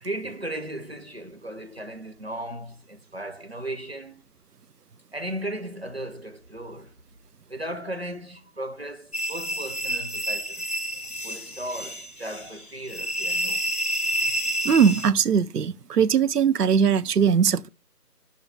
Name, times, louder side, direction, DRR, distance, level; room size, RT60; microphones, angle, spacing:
voice 1, 0.0-4.2 5.1-6.9 7.5-10.7 11.2-13.7, right 1 dB, 40° right, 0.7 m, -36 dB
sound 1, 9.1-15.1, equal, 65° left, 1.3 m, -29 dB
voice 2, 14.6-17.7, right 7 dB, 80° right, 0.6 m, -20 dB
5.8 x 5.8 x 4.5 m
figure-of-eight pair, 170°, 47 cm